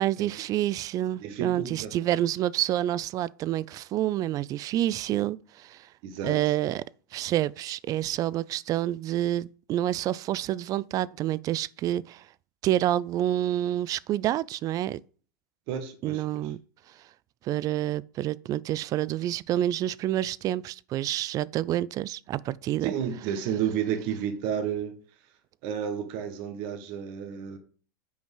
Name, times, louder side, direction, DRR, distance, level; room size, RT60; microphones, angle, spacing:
voice 1, 0.0-5.9 6.2-6.8 7.1-12.2 12.6-15.0 16.0-16.6 17.4-22.9, right 13 dB, 35° right, 0.4 m, -28 dB
voice 2, 1.2-2.1 6.0-6.4 15.7-16.4 22.8-24.9 25.6-27.6, right 8 dB, 55° right, 1.6 m, -31 dB
9.1 x 5.1 x 3.8 m
supercardioid pair, 125°, 11 cm